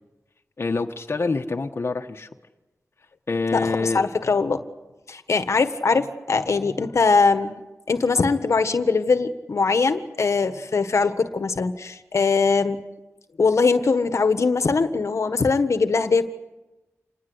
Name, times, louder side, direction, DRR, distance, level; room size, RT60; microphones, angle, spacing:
voice 1, 0.6-2.3 3.3-4.0, left 3 dB, 50° left, 3 dB, 1.4 m, -26 dB
voice 2, 3.5-4.6 5.1-7.6 7.9-12.8 13.4-16.3, left 4 dB, 65° left, 9 dB, 1.5 m, -21 dB
27.5 x 20.5 x 8.1 m, 1.0 s
wide cardioid pair, 95°, 5 cm